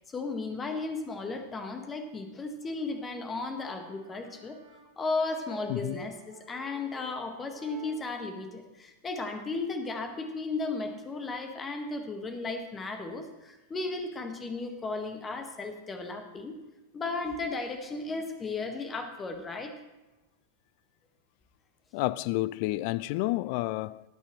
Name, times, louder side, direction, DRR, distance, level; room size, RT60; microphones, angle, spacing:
voice 1, 0.1-4.6 5.0-16.6 16.9-19.7, left 3 dB, 20° left, 1.6 m, -35 dB
Brass instrument, 2.6-8.1, right 1 dB, 70° right, 3.1 m, -51 dB
voice 2, 5.7-6.0 21.9-24.0, left 18 dB, 45° left, 0.3 m, -30 dB
19.5 x 8.9 x 3.1 m
figure-of-eight pair, 90°, 0 cm